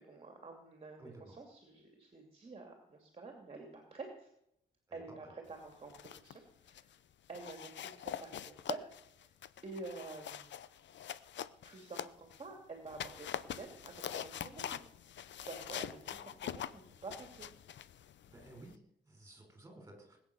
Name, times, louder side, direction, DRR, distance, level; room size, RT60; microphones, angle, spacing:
voice 1, 0.0-4.3 4.9-7.0 7.3-8.8 9.1-9.3 9.6-10.5 11.6-14.8 15.5-17.5, right 3 dB, 30° right, 3 dB, 2.7 m, -49 dB
voice 2, 1.0-1.3 4.9-5.0 16.1-16.6 18.3-18.8 19.1-20.2, right 2 dB, 15° right, 2 dB, 5.2 m, -55 dB
sound 1, 5.7-6.4 6.7-6.9 7.3-12.5 12.9-18.8, left 10 dB, 65° left, 0.7 m, -44 dB
20.5 x 8.8 x 7.1 m, 0.75 s
wide cardioid pair, 150°, 20 cm